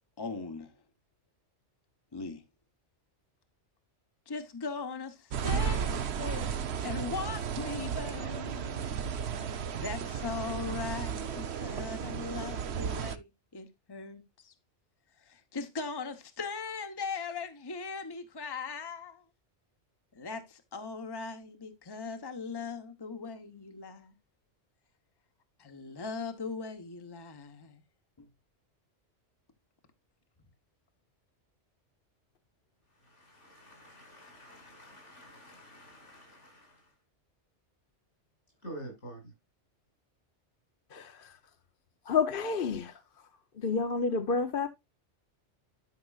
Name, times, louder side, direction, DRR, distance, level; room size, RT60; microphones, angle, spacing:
voice 1, 0.2-0.7 2.1-2.4 4.3-6.5 6.8-8.9 9.7-14.5 15.2-19.2 20.1-24.1 25.6-27.8 28.2-28.3, left 4 dB, 20° left, 1.0 m, -39 dB
sound 1, 5.3-13.2, right 7 dB, 70° right, 1.1 m, -34 dB
voice 2, 32.9-37.0 38.6-39.3, right 1 dB, 80° left, 6.0 m, -49 dB
voice 3, 40.9-41.4 42.0-43.0 43.5-44.7, left 5 dB, 50° left, 1.0 m, -30 dB
12.0 x 5.9 x 2.4 m
omnidirectional pair, 1.2 m